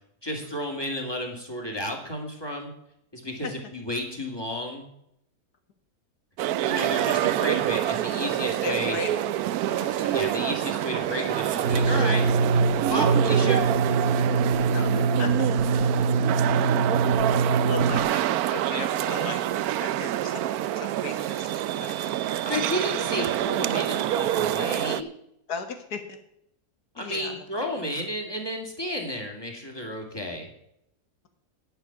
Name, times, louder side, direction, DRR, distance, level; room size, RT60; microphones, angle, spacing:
voice 1, 0.2-2.7 3.1-4.9 6.6-9.0 10.1-12.2 12.9-13.7 22.4-25.1 26.9-30.5, left 1 dB, 15° left, 2 dB, 2.5 m, -32 dB
sound 1, 6.4-25.0, right 12 dB, 75° right, 1.0 m, -27 dB
voice 2, 8.6-10.2 14.7-15.5 17.7-19.4 19.8-22.4 22.7-22.9 25.5-26.2 27.0-27.5 27.7-27.9, left 5 dB, 80° left, 7 dB, 2.1 m, -37 dB
sound 2, 11.6-18.0, right 4 dB, 45° right, 1.3 m, -23 dB
10.5 x 10.0 x 5.9 m, 0.78 s
omnidirectional pair, 1.7 m